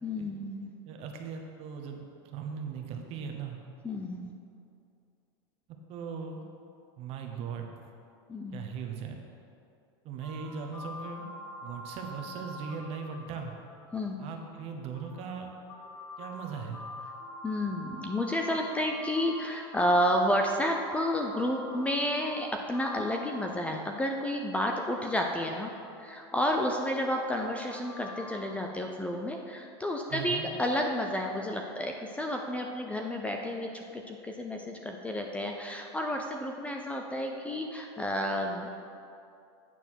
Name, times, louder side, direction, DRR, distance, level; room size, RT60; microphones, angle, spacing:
voice 1, 0.0-0.7 3.8-4.3 8.3-8.6 13.9-14.2 17.4-25.7 26.0-38.7, left 1 dB, 10° left, 2 dB, 0.4 m, -31 dB
voice 2, 0.8-3.6 5.9-6.4 7.0-7.9 8.5-9.1 10.0-11.3 11.6-13.5 14.2-15.5 16.2-16.8 30.1-30.5, right 6 dB, 45° right, 3 dB, 1.1 m, -39 dB
sound 1, 10.2-24.0 24.7-28.5, left 1 dB, 30° left, 1.1 m, -45 dB
9.0 x 4.1 x 6.3 m, 2.6 s
supercardioid pair, 135°, 14 cm